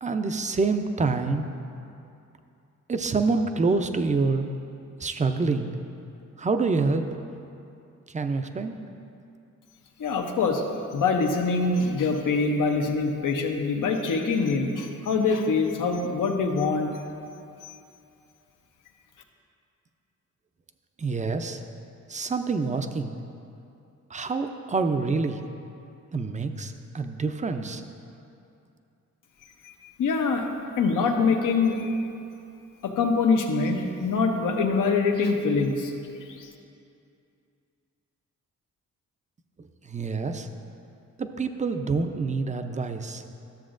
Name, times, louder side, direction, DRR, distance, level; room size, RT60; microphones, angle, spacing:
voice 1, 0.0-1.5 2.9-4.5 5.0-5.7 6.4-7.1 8.1-8.8 21.0-21.6 22.1-23.1 24.1-25.4 26.1-27.8 39.8-40.5 41.2-43.2, right 4 dB, 25° right, 7 dB, 0.5 m, -26 dB
voice 2, 10.0-10.6 10.9-16.9 29.6-30.5 30.8-32.1 32.8-35.9 36.4-36.5, left 4 dB, 80° left, 3 dB, 0.9 m, -24 dB
13.0 x 7.0 x 2.5 m, 2.6 s
cardioid pair, 80°, 31 cm